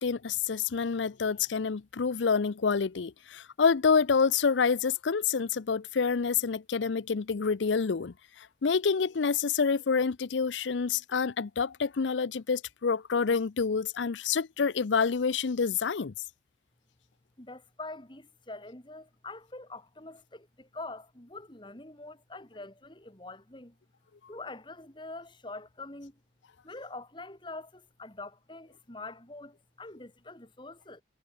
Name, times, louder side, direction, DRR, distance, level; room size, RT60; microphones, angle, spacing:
voice 1, 0.0-16.1, left 5 dB, 90° left, 0.6 m, -27 dB
voice 2, 17.4-23.8 24.3-26.2 26.6-31.0, left 2 dB, 25° left, 2.6 m, -44 dB
head